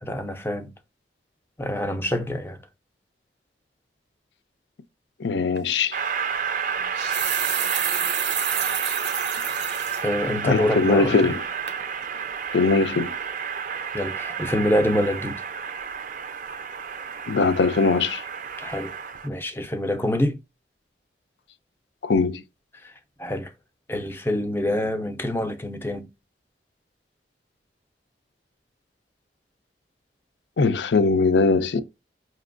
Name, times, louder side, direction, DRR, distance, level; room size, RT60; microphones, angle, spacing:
voice 1, 0.0-0.7 1.6-2.6 9.6-9.7 10.0-11.3 13.9-15.4 18.6-18.9 19.2-20.4 22.8-22.9 23.2-23.5 23.9-26.1, left 1 dB, 15° left, 0.5 m, -26 dB
voice 2, 5.2-6.0 10.4-11.4 12.5-13.1 17.3-18.2 22.0-22.4 30.6-31.8, left 4 dB, 85° left, 0.5 m, -21 dB
sound 1, 5.6-5.7 6.7-10.0 10.5-10.6 11.1-11.4 11.7-11.8, right 9 dB, 90° right, 0.6 m, -29 dB
Train, 5.9-19.3, right 6 dB, 45° right, 0.4 m, -30 dB
5.2 x 2.8 x 2.5 m
head